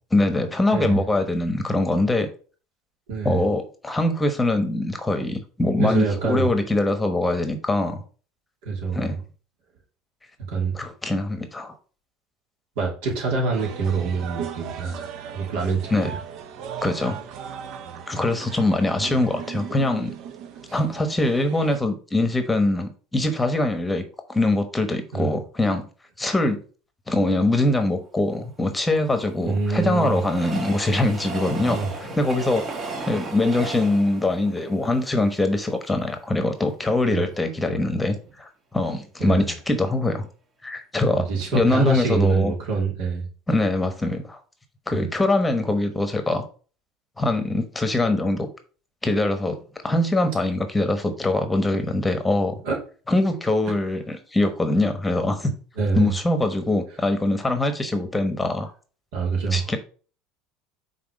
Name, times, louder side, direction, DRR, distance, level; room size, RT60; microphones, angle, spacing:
voice 1, 0.1-2.3 3.2-8.0 8.9-9.2 10.7-11.7 15.9-16.1 16.8-17.2 18.1-20.1 20.7-24.0 24.3-25.8 26.2-26.6 27.1-32.6 33.0-40.3 40.6-41.3 41.5-42.5 43.5-44.4 44.9-46.4 47.2-48.5 49.0-49.6 49.8-52.6 53.1-55.5 55.9-58.7 59.5-59.8, left 2 dB, 10° left, 8 dB, 1.1 m, -23 dB
voice 2, 3.1-3.4 5.8-6.5 8.6-9.1 10.5-10.8 12.8-15.1 15.3-16.1 19.0-19.1 20.7-20.8 25.1-25.3 29.4-30.2 31.6-31.9 37.1-37.3 39.2-39.5 41.1-43.3 44.9-45.0 52.6-52.8 55.8-56.1 59.1-59.7, right 4 dB, 75° right, -1 dB, 2.9 m, -25 dB
sound 1, 13.5-21.8, right 8 dB, 60° right, 0.7 m, -37 dB
Train, 28.6-35.9 36.4-36.5 36.7-36.8, right 3 dB, 35° right, 1.3 m, -35 dB
5.9 x 4.1 x 5.2 m, 0.38 s
supercardioid pair, 120°, 0 cm